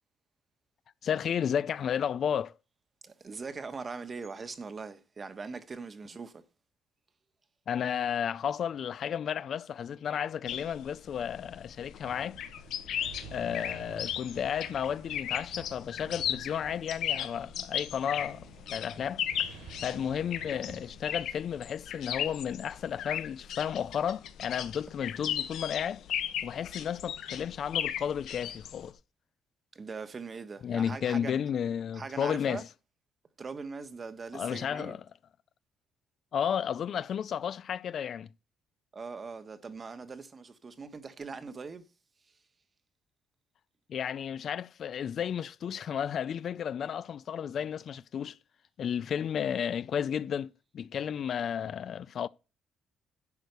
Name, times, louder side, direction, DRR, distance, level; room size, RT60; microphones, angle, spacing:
voice 1, 1.0-2.5 7.7-12.4 13.3-19.2 19.8-26.0 26.4-28.9 30.6-32.6 34.3-35.0 36.3-38.3 43.9-48.4 48.8-52.3, left 8 dB, 50° left, 0.4 m, -33 dB
voice 2, 3.0-6.4 29.7-31.3 31.9-32.6 33.4-35.0 38.9-41.8, right 4 dB, 30° right, 1.2 m, -41 dB
sound 1, 10.5-28.9, left 10 dB, 70° left, 1.4 m, -36 dB
Thunder, 12.0-22.9, right 6 dB, 85° right, 4.4 m, -52 dB
10.5 x 4.4 x 6.8 m
cardioid pair, 120°, 0 cm